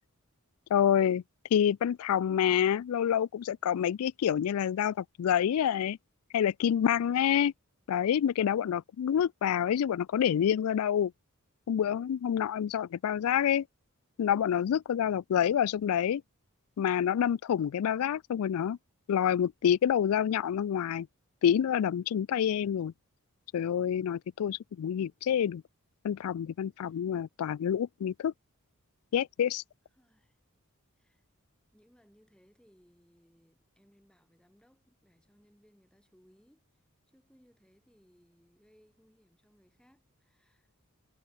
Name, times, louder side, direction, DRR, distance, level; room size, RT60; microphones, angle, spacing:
voice 1, 0.7-1.2 1.5-6.0 6.3-7.5 7.9-11.1 11.7-13.6 14.2-16.2 16.8-18.8 19.1-21.1 21.4-22.9 23.5-25.6 26.0-28.3 29.1-29.6, left 9 dB, 75° left, 0.3 m, -27 dB
voice 2, 29.9-30.4 31.0-31.3 31.7-36.7 37.1-40.7, equal, 5° left, 5.3 m, -65 dB
head